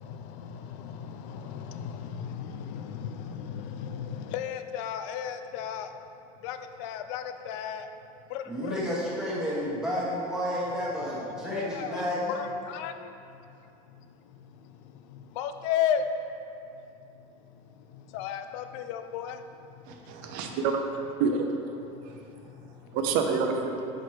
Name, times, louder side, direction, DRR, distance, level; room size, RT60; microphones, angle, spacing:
voice 1, 1.2-5.9 6.4-7.8 8.3-8.8 11.5-12.9 15.4-16.0 18.1-19.4, left 9 dB, 90° left, 8 dB, 0.4 m, -33 dB
voice 2, 8.5-12.3, equal, 5° right, -8 dB, 1.2 m, -31 dB
voice 3, 19.9-20.8 21.2-21.5 22.0-22.2 22.9-23.9, right 5 dB, 60° right, 4 dB, 0.6 m, -28 dB
5.9 x 4.6 x 4.7 m, 2.7 s
cardioid pair, 175°, 16 cm